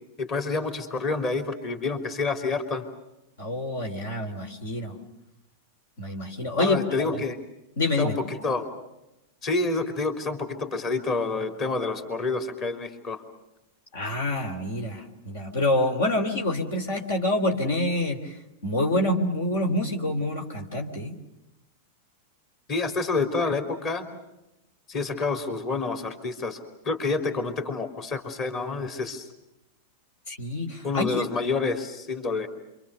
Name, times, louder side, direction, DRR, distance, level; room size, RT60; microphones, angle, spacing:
voice 1, 0.2-2.9 6.6-7.4 8.0-8.7 9.4-13.2 22.7-24.1 24.9-26.6 26.8-29.3 30.8-32.5, left 3 dB, 40° left, 5 dB, 3.7 m, -28 dB
voice 2, 3.4-5.0 6.0-7.2 7.8-8.2 13.9-21.1 30.3-31.3, left 1 dB, 75° left, 3 dB, 3.5 m, -27 dB
27.5 x 25.5 x 6.8 m, 0.91 s
hypercardioid pair, 100°, 0 cm